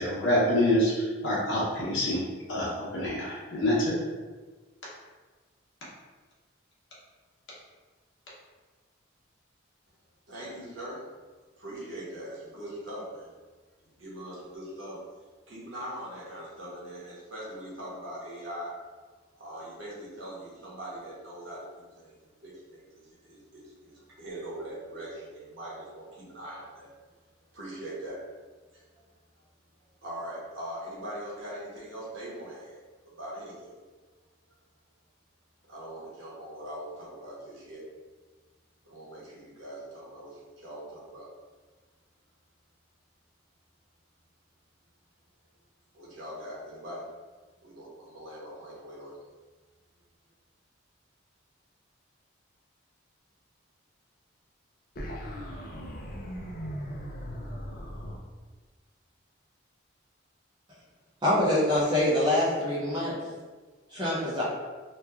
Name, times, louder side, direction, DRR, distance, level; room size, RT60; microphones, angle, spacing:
voice 1, 0.0-2.2 2.5-4.0, left 1 dB, 65° left, -7 dB, 0.8 m, -26 dB
voice 2, 10.3-11.0 11.6-13.3 13.8-15.0 15.5-18.7 19.4-26.9 27.5-28.2 28.7-29.0 30.0-32.8 33.2-33.7 35.6-37.8 38.8-41.3 45.9-47.0 47.6-49.2, right 1 dB, 75° right, -7 dB, 1.0 m, -41 dB
sound 1, 55.0-58.2, equal, 45° left, 0.4 m, -38 dB
voice 3, 61.2-63.2 63.9-64.5, left 1 dB, 20° right, -8 dB, 0.6 m, -25 dB
3.0 x 2.3 x 2.3 m, 1.3 s
head